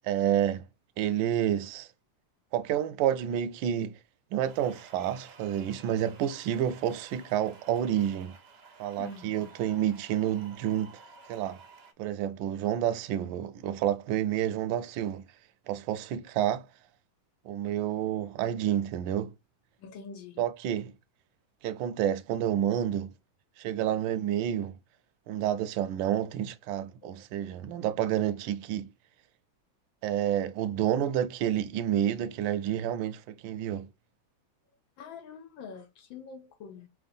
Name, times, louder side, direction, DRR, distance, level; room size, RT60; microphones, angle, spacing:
voice 1, 0.0-0.7 1.0-1.9 2.5-4.0 4.3-8.3 8.8-11.0 11.3-11.6 12.0-15.2 15.7-16.7 17.4-19.3 20.4-20.9 21.6-23.1 23.6-24.7 25.3-28.9 30.0-33.9, right 10 dB, 75° right, 1.3 m, -29 dB
sound 1, 4.4-11.9, right 4 dB, 55° right, 0.7 m, -53 dB
voice 2, 9.0-9.5 19.8-20.5 27.0-27.1 35.0-36.9, left 5 dB, 75° left, 1.5 m, -45 dB
4.4 x 3.6 x 2.6 m
omnidirectional pair, 2.2 m